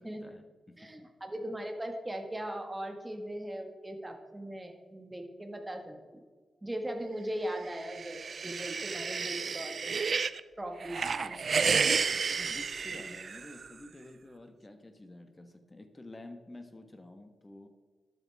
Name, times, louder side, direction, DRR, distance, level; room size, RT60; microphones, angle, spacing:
voice 1, 0.0-0.9 11.0-11.9 12.3-17.7, left 2 dB, 25° left, 7 dB, 1.3 m, -50 dB
voice 2, 0.8-6.0 6.6-10.2 10.6-11.3, right 1 dB, 15° right, 4 dB, 1.8 m, -39 dB
sound 1, 7.7-10.4 10.8-13.7, right 5 dB, 60° right, 0.4 m, -31 dB
12.0 x 8.3 x 3.5 m, 1.4 s
cardioid pair, 75°, 0 cm